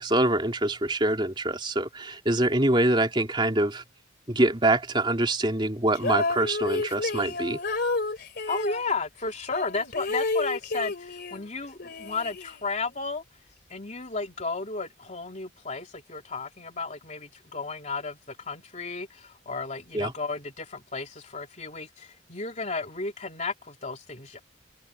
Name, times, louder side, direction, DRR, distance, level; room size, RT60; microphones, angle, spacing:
voice 1, 0.0-3.8 4.3-7.6 19.9-20.1, right 1 dB, 25° right, 3.1 m, -25 dB
sound 1, 5.9-8.8 9.5-11.5 11.8-12.9, left 3 dB, 55° left, 3.0 m, -30 dB
voice 2, 8.5-13.2 13.7-24.4, left 4 dB, 35° left, 3.3 m, -33 dB
head